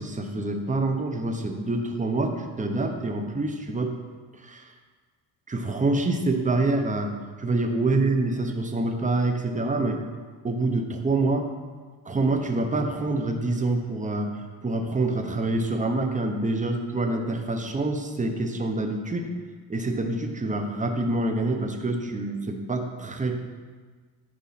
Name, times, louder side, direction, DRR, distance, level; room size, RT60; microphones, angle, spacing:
voice 1, 0.0-3.9 4.4-4.7 5.5-7.1 7.4-10.0 10.4-11.5 12.0-14.3 14.6-19.3 19.7-23.4, right 2 dB, 15° right, 4 dB, 1.0 m, -26 dB
11.5 x 5.4 x 4.3 m, 1.5 s
cardioid pair, 115°, 45 cm